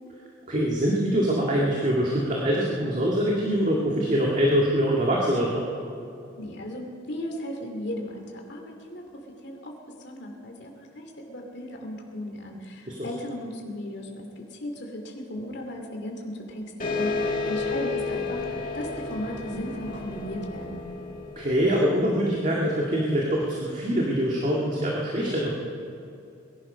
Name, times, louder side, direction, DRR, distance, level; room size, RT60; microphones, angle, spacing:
voice 1, 0.5-5.7 13.0-13.1 21.4-25.5, equal, 40° right, -3 dB, 2.0 m, -24 dB
voice 2, 6.3-9.0 9.4-20.9, left 1 dB, 60° left, 1 dB, 2.6 m, -36 dB
sound 1, 16.8-21.9, left 3 dB, 45° left, 2.4 m, -31 dB
21.0 x 11.5 x 5.6 m, 2.6 s
head